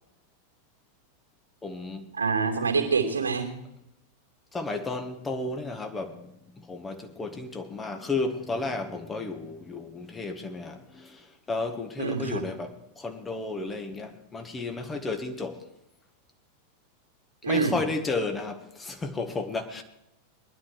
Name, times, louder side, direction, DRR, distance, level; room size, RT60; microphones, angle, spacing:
voice 1, 1.6-2.1 4.5-6.3 6.6-15.7 17.5-19.8, left 3 dB, 15° left, 1.6 m, -33 dB
voice 2, 2.1-3.5 12.0-12.4 17.4-17.8, right 5 dB, 75° right, 2.8 m, -26 dB
20.0 x 11.5 x 4.8 m
figure-of-eight pair, 90°, 0 cm